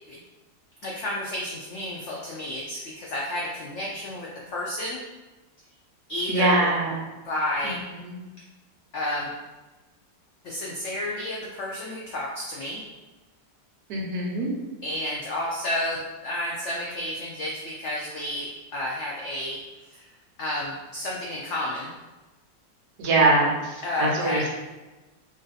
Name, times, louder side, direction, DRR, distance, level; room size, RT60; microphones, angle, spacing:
voice 1, 0.8-5.0 6.1-6.7 7.2-7.8 8.9-9.3 10.4-12.8 14.8-20.1 20.4-21.9 23.8-24.5, left 1 dB, 80° left, -3 dB, 0.6 m, -31 dB
voice 2, 6.3-7.0 7.6-8.2 13.9-14.5 23.0-24.5, right 2 dB, 70° right, -1 dB, 1.2 m, -23 dB
3.1 x 2.6 x 3.9 m, 1.1 s
omnidirectional pair, 1.8 m